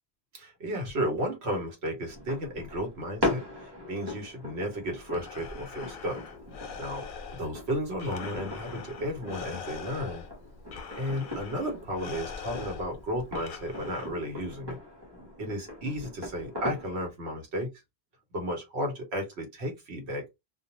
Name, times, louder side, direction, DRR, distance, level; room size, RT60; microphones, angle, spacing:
voice 1, 0.3-6.2 6.8-10.2 11.0-14.8 15.4-17.7 18.3-20.2, equal, 80° right, 1.2 m, -33 dB
sound 1, 2.1-17.1, left 1 dB, 25° right, 1.1 m, -39 dB
Breathing, 4.9-14.5, left 6 dB, 60° left, 0.7 m, -43 dB
2.3 x 2.2 x 2.9 m
omnidirectional pair, 1.1 m